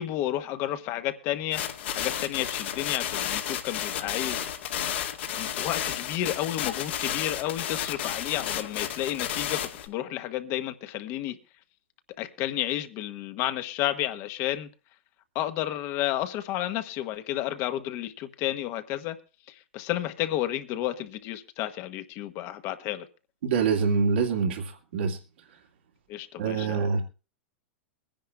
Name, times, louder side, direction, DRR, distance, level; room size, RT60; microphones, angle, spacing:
voice 1, 0.0-4.5 5.4-11.4 12.2-14.7 15.3-19.2 19.5-23.1 26.1-27.0, left 13 dB, 45° left, 1.3 m, -31 dB
sound 1, 1.5-9.9, left 10 dB, 65° left, 1.9 m, -32 dB
voice 2, 23.4-25.2 26.4-27.0, right 5 dB, 70° right, 2.2 m, -25 dB
23.0 x 10.5 x 2.3 m
hypercardioid pair, 105°, 6 cm